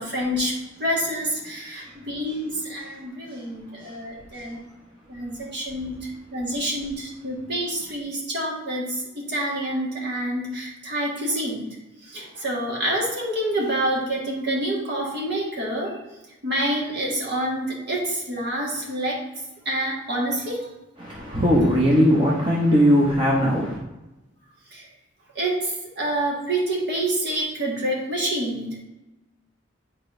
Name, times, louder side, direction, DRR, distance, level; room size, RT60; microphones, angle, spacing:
voice 1, 0.0-4.6 5.1-11.7 12.0-15.9 16.4-19.2 19.6-20.7 24.7-24.9 25.3-28.8, right 1 dB, 60° right, -3 dB, 1.7 m, -27 dB
voice 2, 21.0-23.8, equal, 25° right, -4 dB, 0.9 m, -20 dB
8.8 x 4.3 x 2.6 m, 1.0 s
head